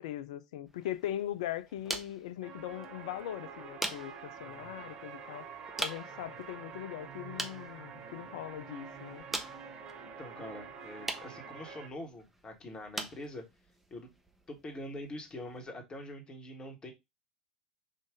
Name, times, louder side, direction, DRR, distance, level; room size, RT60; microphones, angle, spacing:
voice 1, 0.0-5.5 5.8-9.3, left 12 dB, 60° left, 0.5 m, -40 dB
sound 1, 0.7-15.7, right 1 dB, 5° right, 0.8 m, -45 dB
sound 2, 2.4-11.9, right 6 dB, 35° right, 0.9 m, -47 dB
voice 2, 10.0-13.4 13.9-14.1 14.5-16.9, left 1 dB, 25° left, 1.3 m, -44 dB
5.1 x 2.6 x 3.5 m
figure-of-eight pair, 80°, 4 cm